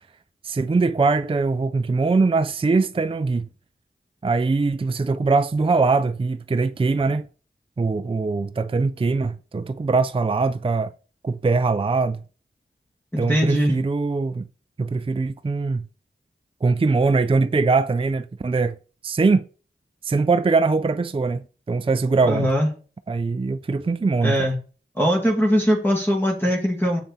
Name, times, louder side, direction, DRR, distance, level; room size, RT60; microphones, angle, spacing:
voice 1, 0.4-3.5 4.2-7.3 7.8-10.9 11.2-12.2 13.2-14.5 14.8-15.9 16.6-18.8 19.0-19.5 20.0-22.5 23.1-24.5, right 4 dB, 25° right, 0.4 m, -22 dB
voice 2, 13.1-13.8 22.3-22.7 24.2-24.6 25.0-27.0, equal, 10° left, 2.2 m, -21 dB
6.9 x 5.9 x 4.2 m
wide cardioid pair, 45°, 21 cm